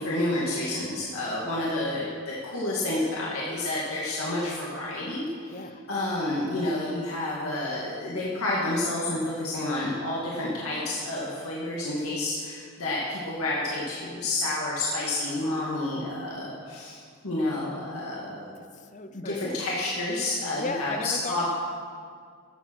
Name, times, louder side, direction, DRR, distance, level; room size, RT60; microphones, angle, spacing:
voice 1, 0.0-5.3 5.9-18.5 19.1-21.5, left 2 dB, 80° left, -5 dB, 2.1 m, -29 dB
voice 2, 5.5-5.8 18.6-19.5 20.6-21.5, left 3 dB, 35° left, 9 dB, 0.6 m, -36 dB
15.0 x 7.6 x 6.3 m, 2.1 s
head